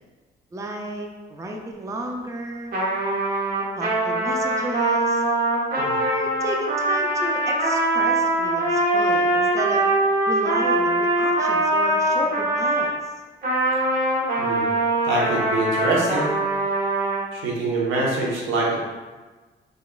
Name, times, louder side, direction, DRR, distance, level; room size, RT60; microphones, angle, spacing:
voice 1, 0.5-2.8 3.8-5.2 5.8-9.9 10.3-13.0, right 1 dB, 15° right, 1 dB, 0.5 m, -32 dB
Trumpet, 2.7-12.9 13.4-17.2, right 1 dB, 50° right, 1.4 m, -22 dB
voice 2, 15.0-16.3 17.3-18.9, right 2 dB, 85° right, -4 dB, 1.1 m, -24 dB
4.2 x 3.9 x 2.4 m, 1.3 s
cardioid pair, 90°, 20 cm